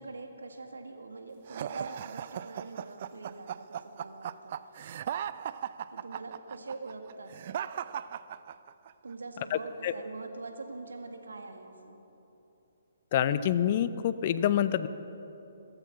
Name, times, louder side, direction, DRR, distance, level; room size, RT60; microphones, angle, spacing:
voice 1, 0.0-4.5 5.9-7.3 9.0-12.0, right 3 dB, 75° right, 6 dB, 1.7 m, -43 dB
sound 1, 1.5-8.9, right 10 dB, 45° right, 0.4 m, -37 dB
voice 2, 9.5-9.9 13.1-14.9, left 10 dB, 40° left, 14 dB, 0.6 m, -27 dB
16.0 x 14.5 x 5.9 m, 3.0 s
figure-of-eight pair, 135°, 0 cm